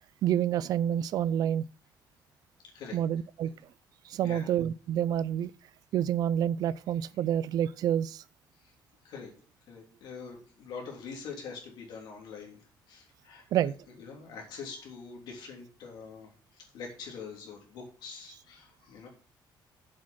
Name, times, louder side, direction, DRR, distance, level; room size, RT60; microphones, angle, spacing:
voice 1, 0.2-1.6 2.9-3.5 4.1-5.5 5.9-8.2 13.5-13.7, right 10 dB, 50° right, 0.4 m, -28 dB
voice 2, 2.6-3.0 4.2-4.5 8.6-8.7 9.0-9.3 9.7-19.1, left 5 dB, 65° left, 3.3 m, -44 dB
7.5 x 6.4 x 5.7 m
cardioid pair, 180°, 8 cm